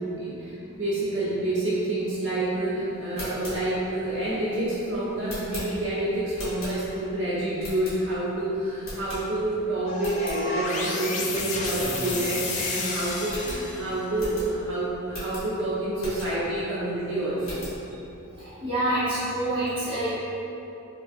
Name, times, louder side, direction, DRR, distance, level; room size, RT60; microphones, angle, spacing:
voice 1, 0.0-17.6, right 1 dB, 60° right, -11 dB, 0.9 m, -28 dB
sound 1, 3.0-7.1 7.6-8.3 8.8-9.6 9.9-10.4 10.8-10.9 11.2-11.3 11.7-12.7 12.9-13.0 13.2-16.6 17.0-17.8, equal, 75° left, 1.1 m, -39 dB
sound 2, 9.9-14.2, left 3 dB, 35° left, 0.3 m, -31 dB
voice 2, 18.4-20.1, right 1 dB, 25° right, -13 dB, 0.9 m, -27 dB
3.5 x 2.3 x 2.5 m, 2.9 s
head